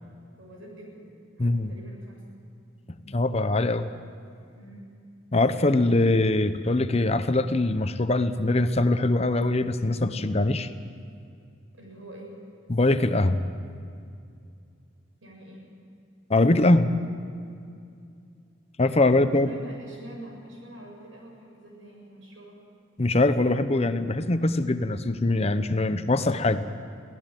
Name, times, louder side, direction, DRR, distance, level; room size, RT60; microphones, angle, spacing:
voice 1, 0.4-1.1 1.4-2.4 4.5-4.9 11.7-12.4 15.2-15.7 19.1-22.6, right 1 dB, 90° right, -1 dB, 7.8 m, -45 dB
voice 2, 1.4-1.7 3.1-3.9 5.3-10.7 12.7-13.4 16.3-16.9 18.8-19.5 23.0-26.6, left 2 dB, 30° left, 10 dB, 0.8 m, -22 dB
23.5 x 16.5 x 9.1 m, 2.4 s
head